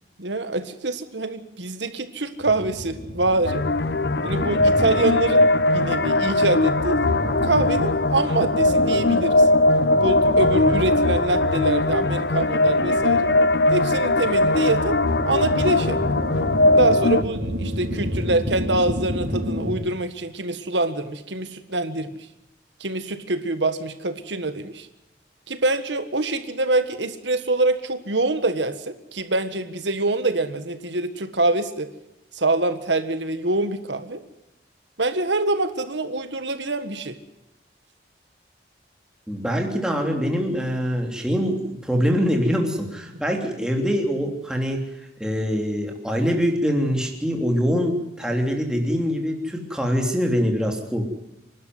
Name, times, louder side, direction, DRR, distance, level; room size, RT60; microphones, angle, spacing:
voice 1, 0.2-3.6 4.2-5.5 5.7-9.5 10.0-13.3 13.7-15.0 15.2-16.0 16.7-22.1 22.8-24.9 25.5-31.9 32.3-34.2 35.0-37.2, right 2 dB, 85° right, 9 dB, 1.7 m, -25 dB
sound 1, 2.4-19.7, equal, 65° right, 7.1 m, -32 dB
sound 2, 3.4-17.2, left 2 dB, 70° left, 0.8 m, -20 dB
voice 2, 39.3-44.8 45.2-51.1, equal, 5° right, 1 dB, 3.2 m, -24 dB
27.0 x 12.0 x 9.5 m, 0.89 s
head